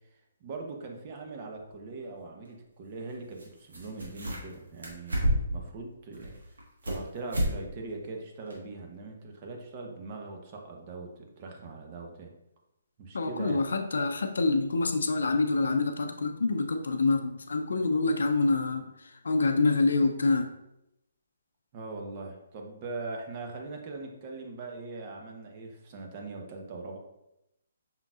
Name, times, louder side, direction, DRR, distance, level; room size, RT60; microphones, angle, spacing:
voice 1, 0.4-6.3 6.8-12.3 13.0-13.6 21.7-27.0, right 3 dB, 35° right, 2 dB, 0.9 m, -41 dB
sound 1, 1.7-1.8 3.4-3.5 3.7-4.5 4.8-5.6 6.1-7.0 7.3-7.6 7.9-8.0 8.5-8.6, equal, 85° right, 1.4 m, -29 dB
voice 2, 13.1-20.5, left 3 dB, 80° left, 7 dB, 0.5 m, -26 dB
5.7 x 3.8 x 2.4 m, 0.86 s
hypercardioid pair, 145°, 0 cm